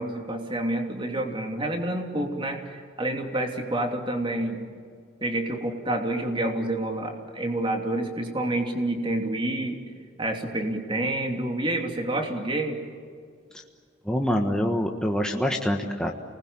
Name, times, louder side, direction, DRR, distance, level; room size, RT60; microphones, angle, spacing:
voice 1, 0.0-4.7 5.2-9.8 10.2-12.8, right 1 dB, 25° right, 3 dB, 3.0 m, -28 dB
voice 2, 14.0-16.1, equal, 5° left, 1 dB, 1.4 m, -25 dB
28.5 x 20.5 x 8.8 m, 2.1 s
head